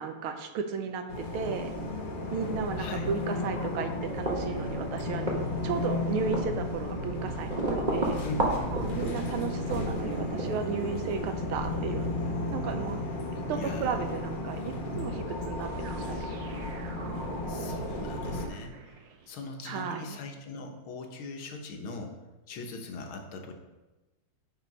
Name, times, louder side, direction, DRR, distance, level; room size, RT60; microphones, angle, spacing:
voice 1, 0.0-1.7 2.3-5.3 5.6-8.2 8.7-12.1 12.5-13.0 13.5-16.4 19.6-20.2, right 6 dB, 90° right, 7 dB, 1.6 m, -34 dB
sound 1, 1.1-18.5, left 2 dB, 50° left, 0.6 m, -34 dB
sound 2, 4.2-12.7, right 2 dB, 25° right, 1.2 m, -35 dB
voice 2, 8.2-8.8 13.5-14.0 17.5-22.2 22.5-23.5, left 3 dB, 80° left, 3 dB, 1.9 m, -40 dB
sound 3, 15.6-19.6, right 5 dB, 65° right, 1.5 m, -44 dB
8.6 x 4.8 x 5.3 m, 1.1 s
omnidirectional pair, 2.3 m